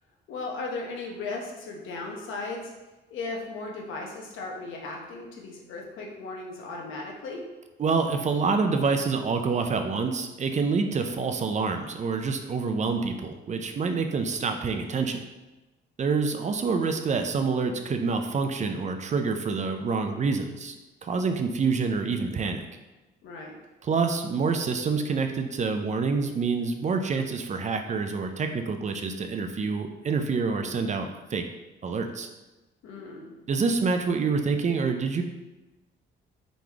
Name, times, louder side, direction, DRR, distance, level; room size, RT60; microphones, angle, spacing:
voice 1, 0.3-2.7 3.1-7.4 23.2-23.6 32.8-33.3, left 3 dB, 80° left, 0 dB, 0.9 m, -36 dB
voice 2, 7.8-15.2 16.0-20.7 21.0-22.7 23.8-31.4 31.8-32.3 33.5-35.2, right 4 dB, 35° right, 6 dB, 0.5 m, -27 dB
3.9 x 3.1 x 3.4 m, 1.1 s
cardioid pair, 90°, 20 cm